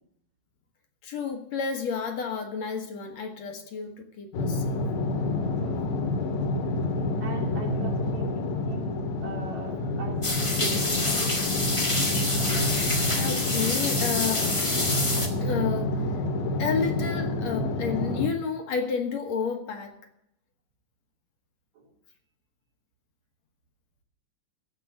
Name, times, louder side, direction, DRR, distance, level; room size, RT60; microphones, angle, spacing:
voice 1, 1.0-4.8 12.0-12.1 12.7-14.5 15.4-16.0 16.6-19.9, left 6 dB, 60° left, 5 dB, 2.3 m, -31 dB
sound 1, 4.3-18.3, left 2 dB, 85° left, 3.1 m, -28 dB
voice 2, 7.2-8.9 9.2-10.2 10.6-11.2 21.8-21.9, right 4 dB, 85° right, -1 dB, 5.1 m, -39 dB
sound 2, 10.2-15.3, left 1 dB, 20° left, 0.7 m, -27 dB
15.0 x 5.4 x 9.7 m, 0.77 s
omnidirectional pair, 3.8 m